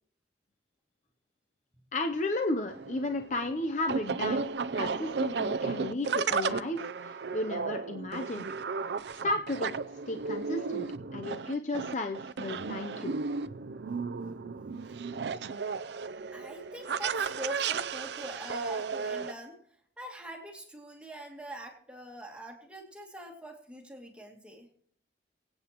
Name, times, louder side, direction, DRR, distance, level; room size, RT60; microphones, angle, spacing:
voice 1, 1.9-8.5 9.2-9.8 10.1-13.2, left 2 dB, 45° left, 5 dB, 0.7 m, -34 dB
sound 1, 2.7-19.3, right 5 dB, 75° right, 0.5 m, -34 dB
voice 2, 16.3-19.6 20.0-24.7, right 1 dB, 5° right, 0 dB, 2.3 m, -44 dB
23.5 x 8.8 x 3.0 m, 0.63 s
head